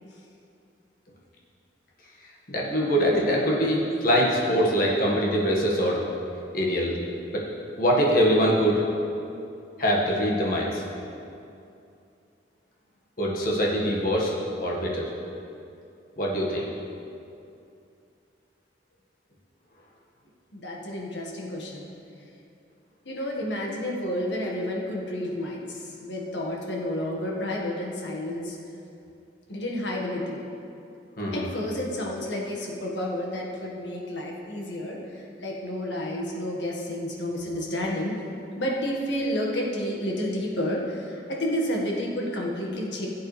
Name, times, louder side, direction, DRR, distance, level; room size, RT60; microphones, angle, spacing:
voice 1, 2.5-6.0 6.5-6.9 7.3-7.4 7.8-8.8 9.8-10.8 13.2-14.3 14.6-15.1 16.2-16.7 31.2-31.4, equal, 50° left, -3 dB, 1.8 m, -23 dB
voice 2, 20.5-21.9 23.0-28.6 29.5-30.4 31.3-38.1 38.6-43.1, left 1 dB, 70° left, -2 dB, 1.7 m, -30 dB
16.0 x 8.1 x 3.4 m, 2.6 s
head